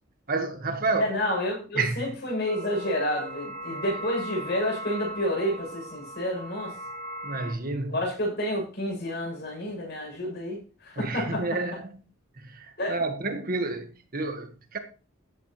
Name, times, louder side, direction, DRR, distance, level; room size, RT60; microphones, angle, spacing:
voice 1, 0.3-1.1 1.7-2.1 7.2-8.0 11.0-11.9 12.5-14.8, right 3 dB, 50° right, 1.6 m, -29 dB
voice 2, 0.9-6.7 7.9-11.4 12.8-13.0, left 1 dB, 55° left, 7.6 m, -29 dB
sound 1, 2.5-7.5, right 1 dB, 90° right, 4.4 m, -38 dB
14.5 x 9.6 x 3.2 m
head